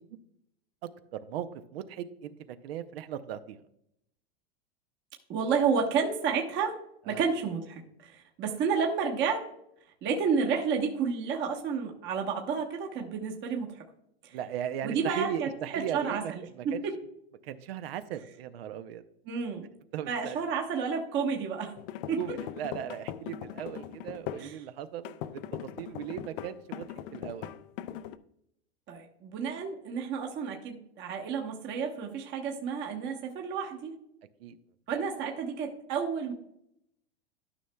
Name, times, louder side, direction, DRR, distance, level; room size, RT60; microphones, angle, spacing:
voice 1, 1.1-3.6 7.1-7.2 14.3-16.3 16.6-16.8 17.4-19.0 19.9-20.4 22.2-26.8 27.1-27.5 34.4-34.6, right 10 dB, 75° right, 11 dB, 0.7 m, -37 dB
voice 2, 5.3-6.7 7.1-9.5 10.0-13.8 14.2-14.4 14.8-17.0 19.3-19.7 20.1-21.7 22.1-22.2 24.4-24.6 28.9-33.9 34.9-36.3, right 6 dB, 35° right, 1 dB, 1.1 m, -31 dB
sound 1, 21.8-24.5 25.0-28.2, left 11 dB, 60° left, 0.5 m, -40 dB
12.5 x 5.6 x 2.2 m, 0.76 s
hypercardioid pair, 120°, 31 cm